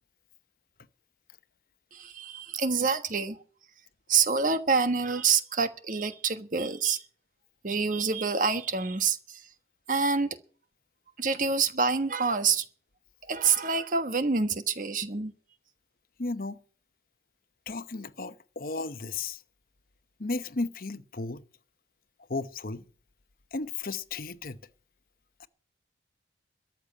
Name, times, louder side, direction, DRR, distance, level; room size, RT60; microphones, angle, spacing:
voice 1, 1.9-3.4 4.1-7.0 7.6-9.5 9.9-10.3 11.2-12.6 13.2-15.3, right 5 dB, 50° right, 1.3 m, -27 dB
voice 2, 16.2-16.6 17.7-19.4 20.2-21.4 22.3-22.9 23.5-24.6 25.4-25.5, left 3 dB, 55° left, 0.8 m, -34 dB
13.5 x 7.0 x 9.5 m
head